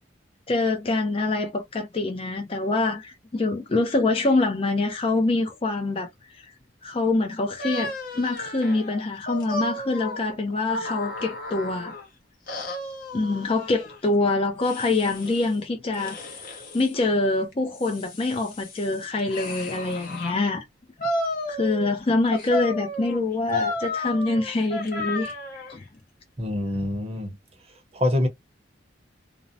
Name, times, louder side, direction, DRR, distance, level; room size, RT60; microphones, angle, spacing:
voice 1, 0.5-6.5 6.8-11.9 13.1-16.2 16.4-20.6 21.5-25.8, left 2 dB, 30° left, 0.4 m, -25 dB
sound 1, 7.6-12.1 12.5-14.0 14.6-15.5 15.9-16.9 17.5-20.4 21.0-22.0 22.3-25.8, left 2 dB, 50° left, 0.9 m, -33 dB
voice 2, 26.4-27.3 27.9-28.3, left 1 dB, 30° right, 0.7 m, -25 dB
2.6 x 2.0 x 2.5 m
head